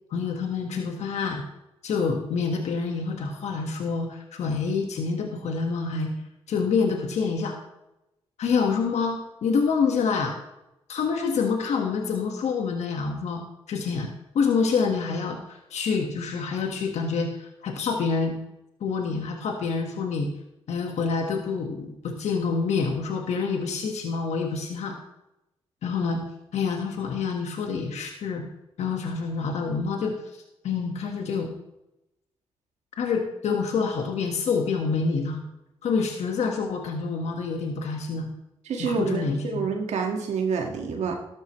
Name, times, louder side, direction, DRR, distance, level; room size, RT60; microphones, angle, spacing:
voice 1, 0.1-1.4 1.8-6.1 6.5-7.6 8.4-10.3 10.9-13.4 13.7-14.1 14.3-18.4 18.8-20.3 20.7-24.9 25.8-26.2 26.5-28.4 28.8-30.2 30.6-31.5 33.0-35.4 35.8-38.3 38.8-39.7, left 5 dB, 80° left, 3 dB, 1.5 m, -27 dB
voice 2, 38.7-41.1, right 5 dB, 80° right, 3 dB, 1.8 m, -28 dB
12.5 x 12.5 x 3.2 m, 0.87 s
supercardioid pair, 40°, 11 cm